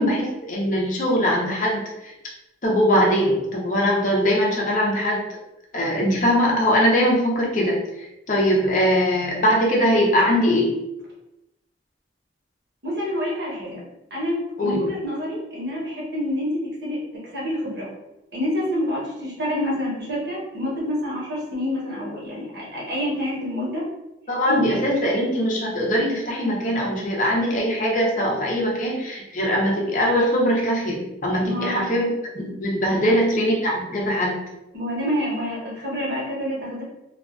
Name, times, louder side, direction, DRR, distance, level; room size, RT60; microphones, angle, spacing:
voice 1, 0.0-2.1 2.6-5.2 5.7-10.7 14.6-14.9 24.3-34.4, equal, 45° left, -2 dB, 0.6 m, -21 dB
voice 2, 12.8-13.8 14.1-17.9 18.3-23.8 24.5-24.8 31.3-31.9 32.9-33.1 34.7-36.8, left 1 dB, 65° right, -6 dB, 1.0 m, -28 dB
2.3 x 2.3 x 2.4 m, 0.93 s
head